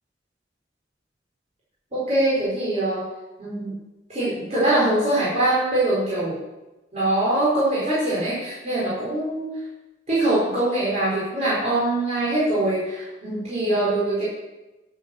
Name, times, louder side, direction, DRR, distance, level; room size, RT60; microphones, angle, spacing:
voice 1, 1.9-3.0 3.4-3.7 4.1-6.4 6.9-9.5 10.1-14.3, right 1 dB, 35° right, -9 dB, 4.5 m, -23 dB
10.5 x 8.8 x 6.3 m, 1.0 s
head